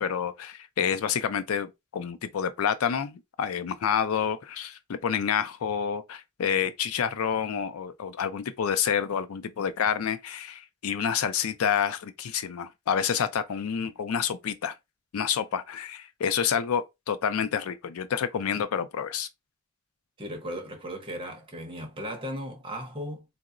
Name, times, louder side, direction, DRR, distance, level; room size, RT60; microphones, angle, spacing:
voice 1, 0.0-14.7 15.1-19.3, left 7 dB, 85° left, 0.4 m, -28 dB
voice 2, 20.2-23.2, equal, 25° right, 0.8 m, -36 dB
3.7 x 2.0 x 2.4 m
head